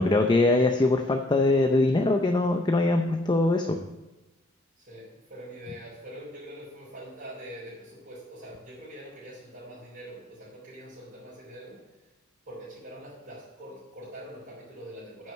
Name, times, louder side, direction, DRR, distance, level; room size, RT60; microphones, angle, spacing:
voice 1, 0.0-3.8, left 2 dB, 20° left, 5 dB, 0.5 m, -22 dB
voice 2, 4.8-11.9 12.5-15.3, equal, 45° right, -10 dB, 4.0 m, -44 dB
9.0 x 6.4 x 6.4 m, 1.1 s
head